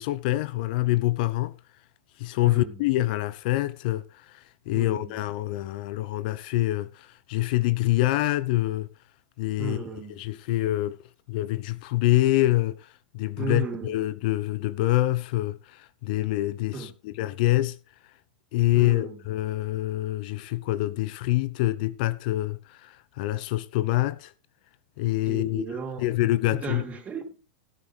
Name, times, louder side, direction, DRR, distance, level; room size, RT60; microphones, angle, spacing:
voice 1, 0.0-1.5 2.2-4.2 4.7-8.9 9.4-9.8 10.2-11.0 11.3-12.9 13.1-17.8 18.5-24.3 25.0-25.7 26.0-26.8, left 17 dB, 60° left, 0.8 m, -26 dB
voice 2, 2.4-2.8 4.7-5.1 9.6-10.2 13.4-14.0 16.7-16.9 18.7-19.2 25.2-26.1 26.5-27.4, right 3 dB, 25° right, 3.3 m, -35 dB
17.5 x 8.7 x 3.4 m
hypercardioid pair, 105°, 5 cm